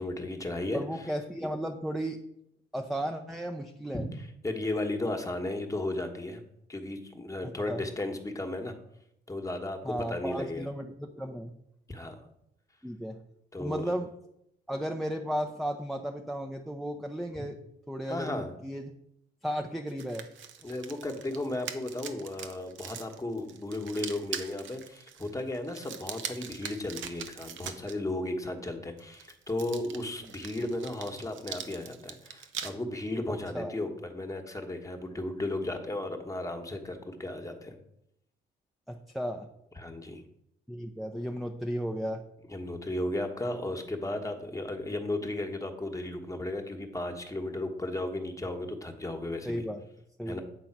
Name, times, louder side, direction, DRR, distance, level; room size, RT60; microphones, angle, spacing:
voice 1, 0.0-0.8 3.9-6.4 6.7-8.7 9.3-10.7 11.9-12.2 13.5-13.9 17.3-17.4 18.1-18.5 20.6-37.8 39.8-40.2 42.5-49.6 50.3-50.4, left 2 dB, 15° left, 6 dB, 1.2 m, -35 dB
voice 2, 0.7-2.2 2.7-4.0 7.7-7.8 9.8-11.5 12.8-13.2 13.6-14.1 14.7-17.6 17.9-18.9 19.4-20.3 33.5-33.8 38.9-39.5 40.7-42.2 49.4-49.8 50.2-50.4, equal, ahead, 4 dB, 0.6 m, -34 dB
sound 1, 19.9-27.9 29.0-32.7, right 8 dB, 75° right, 0.9 m, -42 dB
8.4 x 3.8 x 5.9 m, 0.78 s
cardioid pair, 90°, 20 cm